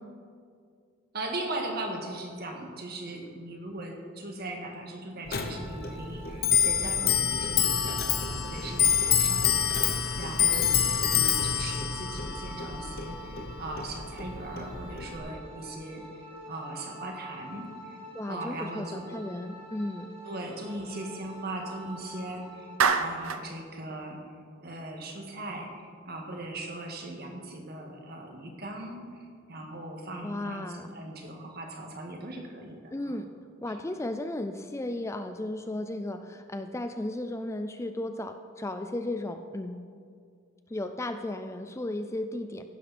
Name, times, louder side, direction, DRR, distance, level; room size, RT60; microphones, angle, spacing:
voice 1, 1.1-16.0 16.5-18.0 18.3-19.1 20.3-22.7 23.0-24.2 24.6-33.2 33.7-33.8, right 2 dB, 50° right, 2 dB, 1.9 m, -39 dB
Clock, 5.3-15.2, left 8 dB, 50° left, 1.0 m, -27 dB
sound 1, 5.3-22.8, right 1 dB, 30° right, 4.2 m, -46 dB
voice 2, 18.1-20.1 30.2-30.9 32.9-33.3 33.6-39.8 40.7-42.7, left 1 dB, 15° left, 8 dB, 0.4 m, -35 dB
Clapping, 22.8-23.5, right 6 dB, 90° right, 0.7 m, -25 dB
15.5 x 11.5 x 4.3 m, 2.2 s
head